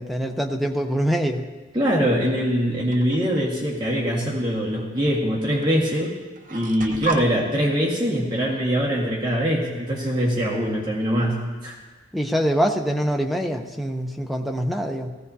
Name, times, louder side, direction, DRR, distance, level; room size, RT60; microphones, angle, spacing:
voice 1, 0.0-1.4 12.1-15.1, equal, ahead, 3 dB, 0.7 m, -24 dB
voice 2, 1.7-6.1 6.5-11.8, equal, 20° right, -4 dB, 1.7 m, -23 dB
sound 1, 2.9-3.4 4.6-4.7 5.6-5.7 6.0-7.3, right 2 dB, 40° right, 0.7 m, -31 dB
17.0 x 15.0 x 2.8 m, 1.3 s
head